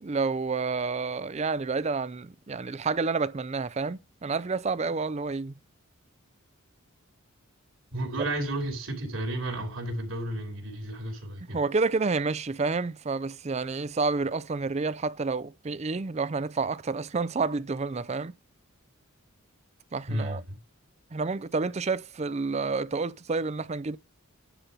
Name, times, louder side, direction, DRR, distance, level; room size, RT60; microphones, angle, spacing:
voice 1, 0.0-5.5 11.5-18.3 19.9-20.4 21.1-24.0, right 4 dB, 30° right, 0.4 m, -29 dB
voice 2, 7.9-11.6 20.1-20.6, right 1 dB, 70° right, 3.1 m, -32 dB
10.0 x 4.3 x 5.4 m
head